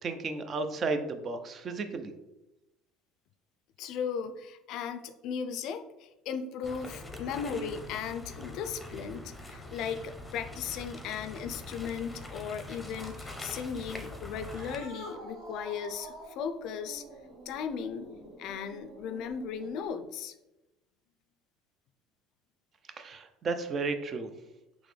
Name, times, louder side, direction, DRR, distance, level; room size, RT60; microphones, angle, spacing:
voice 1, 0.0-2.1 23.0-24.3, right 3 dB, 40° right, 7 dB, 0.5 m, -33 dB
voice 2, 3.8-17.0 17.5-18.1 18.4-20.3, left 7 dB, 65° left, 8 dB, 0.4 m, -37 dB
sound 1, 6.6-14.8, left 2 dB, 10° left, 0.7 m, -43 dB
Cat, 14.3-19.9, right 2 dB, 60° right, 1.3 m, -48 dB
3.9 x 3.0 x 3.2 m, 0.97 s
supercardioid pair, 90°, 0 cm